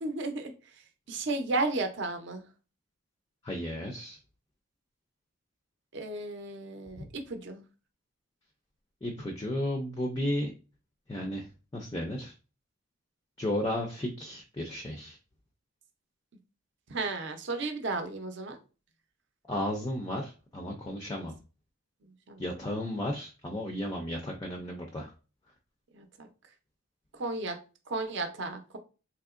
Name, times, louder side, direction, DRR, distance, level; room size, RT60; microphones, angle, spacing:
voice 1, 0.0-0.5 1.1-2.4 5.9-7.6 16.9-18.6 21.1-21.3 22.3-22.5 25.9-26.3 27.1-27.6 27.9-28.8, right 3 dB, 55° right, 6 dB, 0.6 m, -34 dB
voice 2, 3.4-4.2 9.0-10.5 11.1-11.5 11.7-12.3 13.4-15.2 19.5-21.3 22.4-25.1, left 1 dB, 20° left, 2 dB, 0.4 m, -33 dB
3.5 x 2.8 x 2.4 m, 0.33 s
head